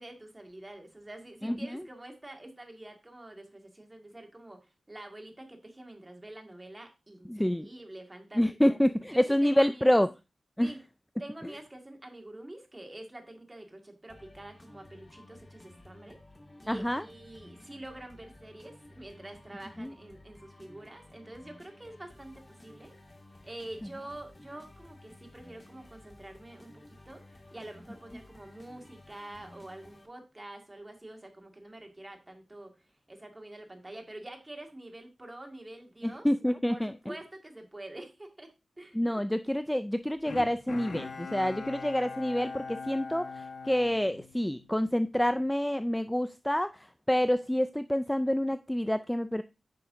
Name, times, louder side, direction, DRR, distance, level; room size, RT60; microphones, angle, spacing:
voice 1, 0.0-8.7 9.1-10.0 10.6-10.8 11.2-16.2 16.6-22.9 23.4-36.3 36.7-39.0, right 1 dB, 20° right, 3 dB, 2.0 m, -47 dB
voice 2, 7.3-7.7 8.4-10.1 10.6-10.7 16.7-17.0 19.8-19.9 36.2-36.9 39.0-49.4, equal, 5° left, 11 dB, 0.3 m, -27 dB
sound 1, 14.1-30.0, left 1 dB, 30° left, 1.9 m, -54 dB
Bowed string instrument, 40.3-44.8 45.2-45.3, left 4 dB, 70° left, 1.3 m, -41 dB
9.4 x 5.9 x 3.7 m, 0.27 s
wide cardioid pair, 110°, 0 cm